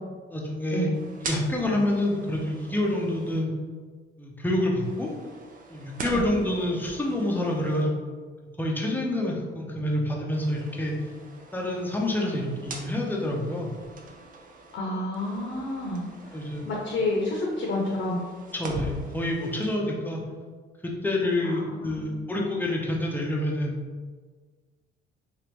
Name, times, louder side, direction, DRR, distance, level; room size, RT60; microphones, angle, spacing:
voice 1, 0.3-0.9 1.2-3.5 4.2-5.1 5.7-8.2 8.6-11.0 11.5-13.7 16.3-16.7 18.5-20.2 20.8-23.8, left 1 dB, 10° left, -2 dB, 0.7 m, -27 dB
sound 1, 0.9-3.4 4.8-7.8 10.3-14.8 15.1-19.8, right 2 dB, 45° right, 0.5 m, -42 dB
voice 2, 14.7-18.2 21.4-22.0, left 1 dB, 70° left, -2 dB, 0.7 m, -30 dB
3.2 x 2.5 x 3.0 m, 1.5 s
cardioid pair, 90°, 20 cm